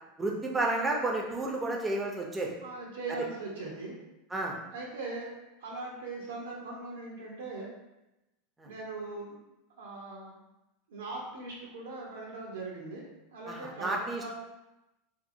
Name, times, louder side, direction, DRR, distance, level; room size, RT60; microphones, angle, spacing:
voice 1, 0.2-2.5 3.1-3.2 4.3-4.6 8.6-8.7 13.5-14.3, right 2 dB, 15° right, -1 dB, 0.6 m, -31 dB
voice 2, 2.6-4.0 4.7-7.7 8.6-9.4 9.8-10.4 10.9-13.0 13.3-14.3, right 3 dB, 85° right, -3 dB, 0.7 m, -40 dB
2.7 x 2.6 x 2.6 m, 0.96 s
hypercardioid pair, 105°, 0 cm